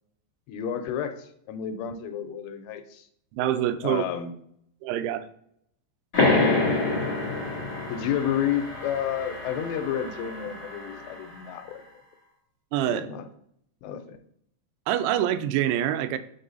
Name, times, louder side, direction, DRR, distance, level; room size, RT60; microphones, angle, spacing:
voice 1, 0.5-3.1 3.8-4.4 7.9-11.8 12.9-13.3 13.8-14.2, left 9 dB, 80° left, 8 dB, 2.7 m, -31 dB
voice 2, 3.3-4.0 4.8-5.2 12.7-13.1 14.9-16.2, right 11 dB, 90° right, 11 dB, 2.9 m, -25 dB
sound 1, 6.1-11.4, left 3 dB, 30° left, 1.9 m, -27 dB
6.2 x 5.5 x 3.9 m, 0.70 s
omnidirectional pair, 5.2 m